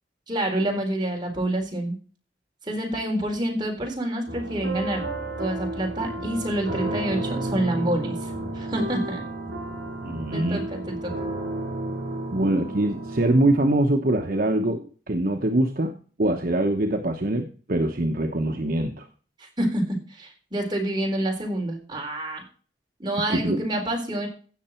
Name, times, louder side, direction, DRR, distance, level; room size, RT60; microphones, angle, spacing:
voice 1, 0.3-1.9 2.6-5.1 5.4-9.2 10.3-11.1 19.4-22.4 23.0-24.3, right 1 dB, 25° right, 1 dB, 4.0 m, -27 dB
sound 1, 4.3-13.7, right 2 dB, 70° right, 5.7 m, -32 dB
voice 2, 10.0-10.6 12.3-19.1 23.3-23.6, right 1 dB, 55° right, 4 dB, 1.0 m, -24 dB
16.0 x 6.7 x 4.4 m, 0.40 s
head